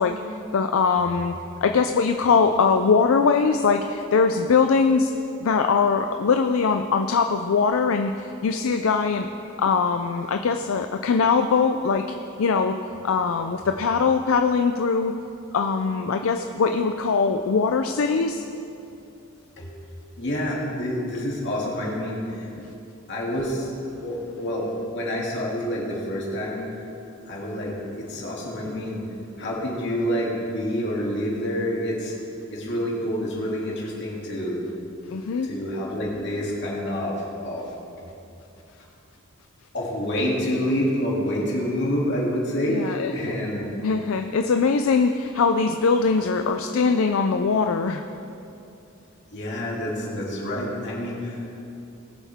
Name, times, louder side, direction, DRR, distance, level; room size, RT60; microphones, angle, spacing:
voice 1, 0.0-1.3 1.6-5.1 5.4-9.3 9.6-12.1 12.4-12.8 13.0-15.1 15.5-18.4 22.6-22.7 28.7-28.8 35.1-35.5 42.7-43.1 43.8-48.0, left 5 dB, 80° left, 6 dB, 0.4 m, -21 dB
voice 2, 20.2-22.5 23.1-23.7 24.0-26.7 27.3-29.0 29.4-32.1 32.5-34.6 35.4-37.6 39.7-43.7 49.3-51.4, equal, 60° left, -4 dB, 2.7 m, -27 dB
20.0 x 7.2 x 3.6 m, 2.8 s
head